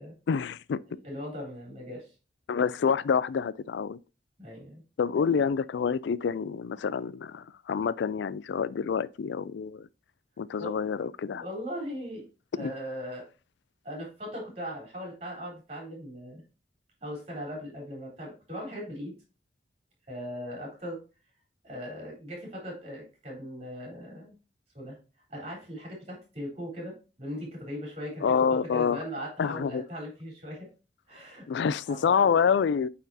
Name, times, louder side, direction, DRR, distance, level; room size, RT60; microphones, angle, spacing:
voice 1, 0.3-0.8 2.5-4.0 5.0-9.9 10.4-11.4 12.6-12.7 28.2-29.0 29.4-29.8 31.5-32.9, left 6 dB, 75° left, 0.3 m, -27 dB
voice 2, 0.9-2.1 4.4-4.8 10.6-10.7 11.3-12.3 12.6-13.3 13.8-16.4 17.0-19.2 20.1-21.0 21.6-24.3 24.7-25.0 25.3-28.2 28.5-30.7 31.1-31.5 31.9-32.2, equal, 35° right, 3.9 m, -39 dB
9.0 x 4.3 x 2.8 m
head